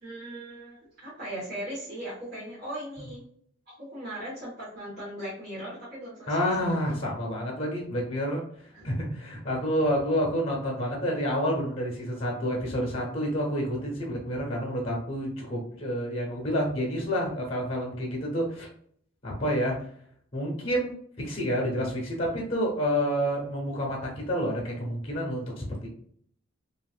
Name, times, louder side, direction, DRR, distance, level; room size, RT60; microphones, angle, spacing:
voice 1, 0.0-3.2 3.7-6.7 8.7-8.9, right 1 dB, 55° right, -11 dB, 1.4 m, -39 dB
voice 2, 6.3-8.4 8.8-18.7 19.2-19.8 20.3-20.9 21.2-25.9, equal, 35° left, -1 dB, 0.9 m, -29 dB
2.9 x 2.7 x 2.4 m, 0.63 s
head